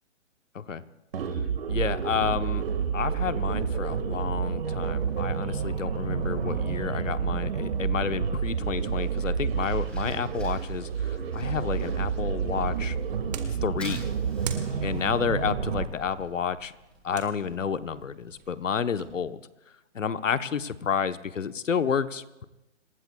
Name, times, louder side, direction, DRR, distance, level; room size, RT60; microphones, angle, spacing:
sound 1, 1.1-15.9, right 6 dB, 50° right, 1.8 m, -29 dB
voice 1, 1.7-2.6 2.9-13.0 13.6-14.1 14.8-16.7 17.0-19.4 19.9-22.4, left 6 dB, 90° left, 12 dB, 1.1 m, -30 dB
Fire, 8.8-18.5, left 1 dB, 5° left, 5.7 m, -50 dB
sound 2, 12.4-19.2, right 8 dB, 35° right, 1.6 m, -46 dB
27.0 x 20.5 x 2.3 m, 0.97 s
hypercardioid pair, 160°, 37 cm